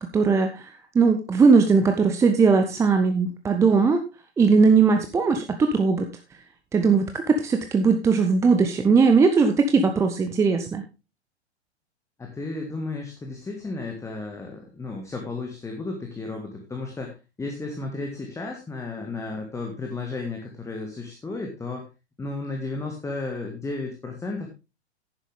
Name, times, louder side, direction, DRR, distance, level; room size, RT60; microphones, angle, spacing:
voice 1, 0.0-4.0 4.4-6.1 6.7-10.8, right 4 dB, 10° right, 6 dB, 0.6 m, -19 dB
voice 2, 12.2-21.9 22.2-24.5, left 3 dB, 10° left, 2 dB, 1.7 m, -33 dB
10.5 x 10.0 x 3.4 m, 0.28 s
figure-of-eight pair, 105°, 34 cm